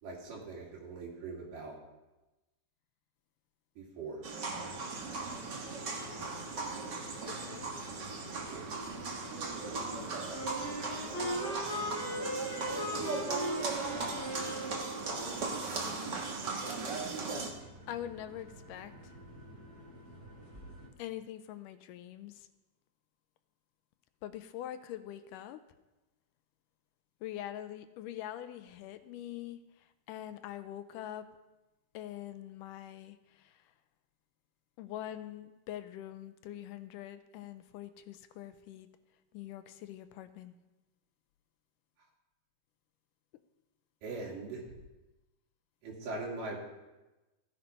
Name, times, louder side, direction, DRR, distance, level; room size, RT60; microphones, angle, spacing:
voice 1, 0.0-1.8 3.8-4.2 8.5-8.7 44.0-44.6 45.8-46.6, right 3 dB, 75° right, 4.2 m, -41 dB
sound 1, 4.2-17.5, right 3 dB, 50° right, 1.4 m, -38 dB
sound 2, 4.4-20.9, equal, 20° right, 2.4 m, -52 dB
voice 2, 7.0-7.7 9.9-10.2 14.1-14.7 17.6-19.1 21.0-22.5 24.2-25.6 27.2-31.3 31.9-33.6 34.8-38.9 39.3-40.6, left 12 dB, 80° left, 2.2 m, -44 dB
Wind instrument woodwind instrument, 10.3-15.1, equal, 50° left, 4.1 m, -38 dB
15.0 x 8.9 x 5.3 m
omnidirectional pair, 3.8 m